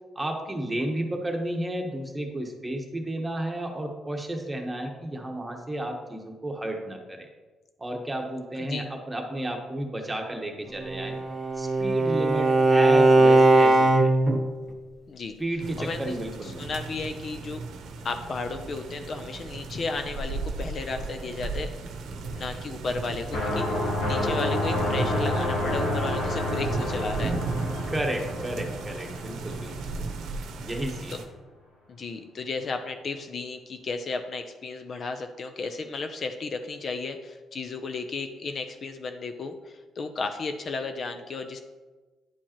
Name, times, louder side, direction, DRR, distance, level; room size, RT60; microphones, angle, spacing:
voice 1, 0.1-7.3 7.8-11.2 11.5-14.2 15.4-16.7 27.9-30.1 30.6-31.2, right 1 dB, 15° right, 2 dB, 1.2 m, -32 dB
Bowed string instrument, 10.8-14.4, right 2 dB, 35° right, 0.9 m, -19 dB
sound 1, 15.6-31.2, right 3 dB, 80° right, 0.8 m, -35 dB
voice 2, 15.8-16.2 16.6-17.6 18.0-21.7 22.2-27.3 31.1-31.2 31.9-41.6, left 4 dB, 50° left, 7 dB, 0.5 m, -34 dB
sound 2, 23.3-30.0, left 1 dB, 90° left, 1.6 m, -29 dB
9.9 x 4.5 x 3.0 m, 1.2 s
cardioid pair, 90°, 0 cm